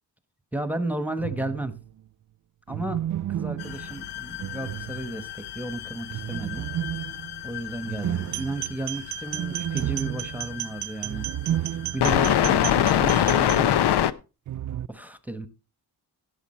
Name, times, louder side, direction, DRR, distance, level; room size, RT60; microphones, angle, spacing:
voice 1, 0.5-1.8 2.7-3.0 3.4-6.7 7.4-11.3 11.7-13.8 14.9-15.5, right 1 dB, 5° right, 1.2 m, -33 dB
sound 1, 1.2-1.9 2.7-5.4 6.1-12.3 12.6-12.7 14.5-14.9, right 11 dB, 50° right, 0.5 m, -32 dB
sound 2, 3.6-14.1, left 11 dB, 80° left, 0.8 m, -26 dB
sound 3, 8.2-13.6, right 16 dB, 85° right, 0.8 m, -35 dB
16.5 x 7.2 x 4.4 m
cardioid pair, 115°, 39 cm